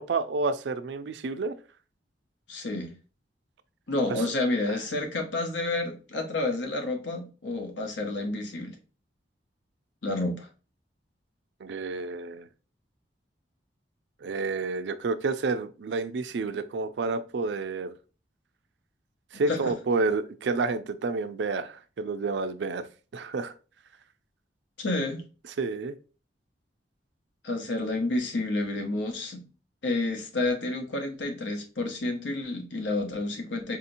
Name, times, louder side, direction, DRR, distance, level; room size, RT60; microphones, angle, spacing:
voice 1, 0.0-1.6 4.1-4.2 4.7-4.8 11.6-12.5 14.2-17.9 19.3-22.9 23.1-23.5 25.6-25.9, right 3 dB, 70° right, 0.4 m, -29 dB
voice 2, 2.5-2.9 3.9-8.7 10.0-10.5 19.5-19.7 24.8-25.2 27.4-29.4 29.8-33.8, left 2 dB, 85° left, 0.8 m, -30 dB
4.1 x 2.8 x 2.5 m
head